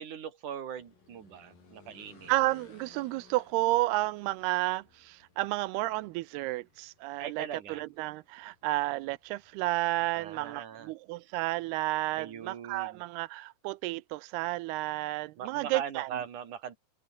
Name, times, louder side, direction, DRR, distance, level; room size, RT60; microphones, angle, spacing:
voice 1, 0.0-2.3 7.2-7.8 10.1-10.9 12.2-13.0 15.4-16.8, right 8 dB, 55° right, 4.0 m, -40 dB
sound 1, 0.8-10.5, left 4 dB, 60° left, 8.3 m, -61 dB
voice 2, 2.3-16.1, right 19 dB, 90° right, 2.7 m, -31 dB
open air
omnidirectional pair, 4.6 m